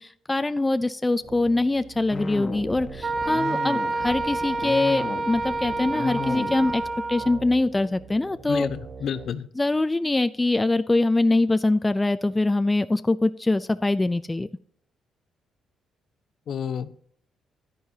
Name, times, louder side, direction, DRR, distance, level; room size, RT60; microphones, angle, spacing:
voice 1, 0.0-6.8 7.1-8.7 9.6-14.5, left 2 dB, 15° left, 11 dB, 0.4 m, -23 dB
sound 1, 1.2-9.3, right 5 dB, 65° right, 2.9 m, -44 dB
sound 2, 2.1-7.1, left 4 dB, 35° left, 1.2 m, -34 dB
Wind instrument woodwind instrument, 3.0-7.4, right 3 dB, 40° right, 1.1 m, -28 dB
voice 2, 8.5-9.5 16.5-16.9, left 7 dB, 65° left, 13 dB, 0.7 m, -30 dB
11.0 x 10.0 x 2.8 m, 0.62 s
cardioid pair, 90°, 0 cm